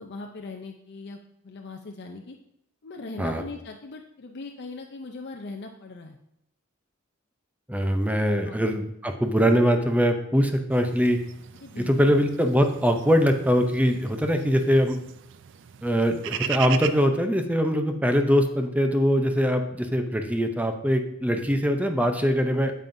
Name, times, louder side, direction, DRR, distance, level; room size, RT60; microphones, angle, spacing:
voice 1, 0.0-2.4 2.8-6.2 8.4-8.7 11.6-12.2, left 3 dB, 55° left, 3 dB, 0.5 m, -40 dB
voice 2, 7.7-11.2 11.8-15.0 15.8-22.7, equal, 5° right, 6 dB, 0.5 m, -22 dB
sound 1, 10.7-17.0, right 10 dB, 60° right, 0.4 m, -38 dB
8.9 x 7.5 x 2.6 m, 0.77 s
head